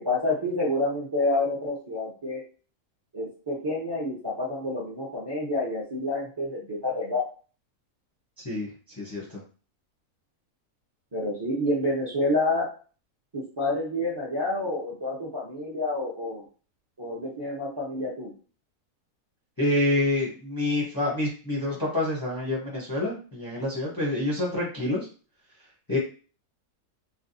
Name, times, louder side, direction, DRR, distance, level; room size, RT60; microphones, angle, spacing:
voice 1, 0.0-2.4 3.1-7.2 11.1-12.7 13.3-16.4 17.0-18.3, left 2 dB, 30° right, -4 dB, 0.4 m, -28 dB
voice 2, 9.0-9.4 19.6-25.1 25.9-26.0, left 1 dB, 25° left, -4 dB, 0.5 m, -27 dB
3.4 x 2.2 x 2.6 m, 0.38 s
omnidirectional pair, 1.6 m